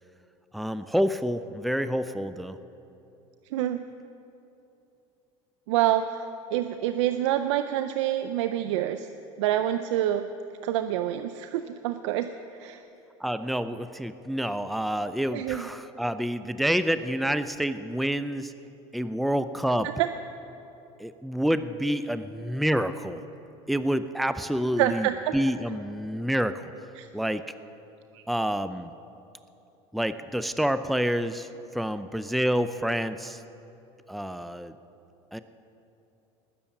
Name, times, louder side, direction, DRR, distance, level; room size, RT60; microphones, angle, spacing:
voice 1, 0.5-2.6 13.2-18.5 18.9-19.9 21.0-23.2 23.7-26.7 27.1-27.4 28.3-28.9 29.9-33.4 34.1-34.7 35.3-35.4, equal, ahead, 12 dB, 0.5 m, -28 dB
voice 2, 3.5-3.8 5.7-9.1 9.4-10.3 10.6-12.3 12.6-12.8 15.3-15.7 20.0-20.1 24.8-25.3 27.0-27.1 28.1-28.2, right 12 dB, 80° right, 10 dB, 0.6 m, -27 dB
20.0 x 7.0 x 8.9 m, 2.9 s
supercardioid pair, 100°, 15 cm